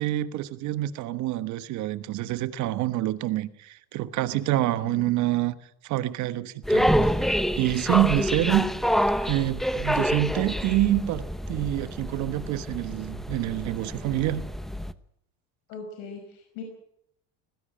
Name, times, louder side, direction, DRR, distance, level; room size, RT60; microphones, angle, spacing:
voice 1, 0.0-5.6 5.8-6.9 7.2-8.6 9.3-14.4, right 14 dB, 65° right, 1.3 m, -27 dB
sound 1, 6.6-14.9, equal, ahead, 0.8 m, -27 dB
voice 2, 8.0-8.8 15.7-16.6, left 5 dB, 80° left, 5.2 m, -41 dB
19.5 x 16.0 x 8.7 m
cardioid pair, 135°, 32 cm